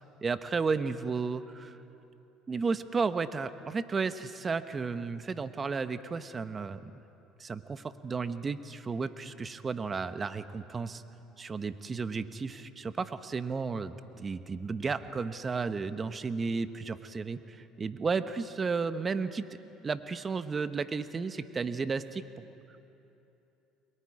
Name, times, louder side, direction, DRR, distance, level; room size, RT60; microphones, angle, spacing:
voice 1, 0.2-1.8 2.5-6.9 7.4-11.0 11.4-19.5 19.8-22.2, right 4 dB, 30° right, 11 dB, 1.0 m, -33 dB
29.5 x 22.0 x 4.9 m, 2.9 s
supercardioid pair, 95°, 0 cm